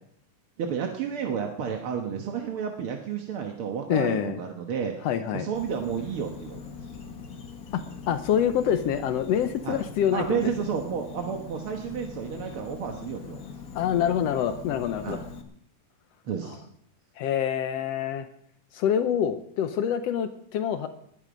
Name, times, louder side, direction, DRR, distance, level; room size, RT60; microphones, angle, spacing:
voice 1, 0.6-5.0 5.3-6.6 9.6-9.8 10.1-13.4 15.0-15.2 16.2-16.6, right 7 dB, 55° right, 3 dB, 1.7 m, -31 dB
voice 2, 3.9-4.4 5.0-5.5 7.7-10.4 13.7-15.2 17.2-18.3 18.7-20.9, left 9 dB, 85° left, 9 dB, 1.4 m, -26 dB
Insect, 5.5-15.4, left 6 dB, 50° left, 1.0 m, -42 dB
20.0 x 11.0 x 5.3 m, 0.71 s
omnidirectional pair, 3.9 m